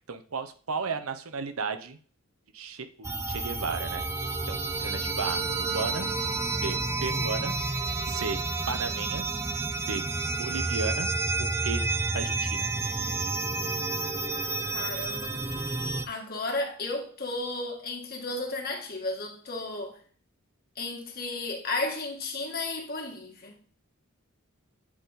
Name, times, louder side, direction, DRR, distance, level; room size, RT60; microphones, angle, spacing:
voice 1, 0.1-2.0 2.5-4.0 4.5-5.4 5.7-6.1 6.6-7.6 8.0-8.4 8.7-9.3 9.9-10.0 10.4-11.1 11.4-11.8 12.1-12.7, right 4 dB, 85° right, 0.8 m, -34 dB
sound 1, 3.0-16.1, right 3 dB, 15° right, 0.5 m, -30 dB
voice 2, 14.7-15.4 16.0-20.0 20.8-23.5, left 2 dB, 45° left, 1.5 m, -33 dB
8.6 x 4.1 x 4.0 m
head